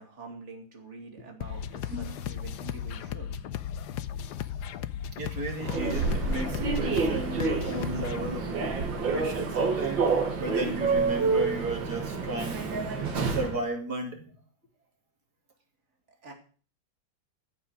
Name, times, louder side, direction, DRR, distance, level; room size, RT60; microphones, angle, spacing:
voice 1, 0.0-3.4 16.2-16.3, right 3 dB, 35° right, 3 dB, 3.0 m, -46 dB
sound 1, 1.4-8.3, left 9 dB, 65° left, 1.2 m, -36 dB
voice 2, 5.1-14.3, right 2 dB, 50° right, 2 dB, 3.3 m, -35 dB
Human voice / Subway metro underground, 5.6-13.6, right 4 dB, 70° right, 2.7 m, -28 dB
14.0 x 5.6 x 9.4 m, 0.41 s
omnidirectional pair, 2.2 m